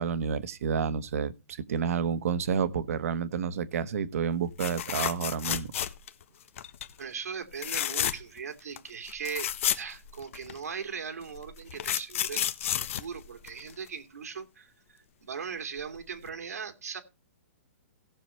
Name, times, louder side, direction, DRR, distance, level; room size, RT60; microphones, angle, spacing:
voice 1, 0.0-5.7, right 7 dB, 65° right, 1.3 m, -30 dB
sound 1, 4.6-6.2 6.6-6.9 7.5-8.4 8.8-8.9 9.1-10.6 11.3-13.9 15.8-16.0 16.3-16.4, left 10 dB, 60° left, 1.3 m, -31 dB
voice 2, 7.0-9.5 9.7-17.0, right 6 dB, 90° right, 2.4 m, -39 dB
17.0 x 7.0 x 4.3 m
hypercardioid pair, 145°, 8 cm